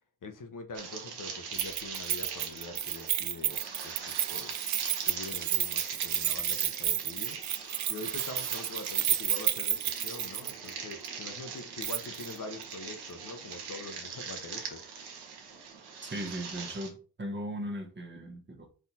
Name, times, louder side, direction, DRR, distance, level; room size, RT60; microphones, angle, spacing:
voice 1, 0.2-3.6 3.8-4.0 4.3-4.5 5.1-7.4 7.9-14.8, left 3 dB, 50° left, 0.9 m, -44 dB
sound 1, 0.7-16.9, right 6 dB, 80° right, 1.2 m, -42 dB
Keys jangling, 1.6-10.7 11.0-11.1 11.8-12.3 12.6-12.7, right 10 dB, 45° right, 0.5 m, -31 dB
voice 2, 16.0-18.7, equal, 30° right, 1.3 m, -38 dB
4.4 x 2.9 x 4.1 m
cardioid pair, 55°, 39 cm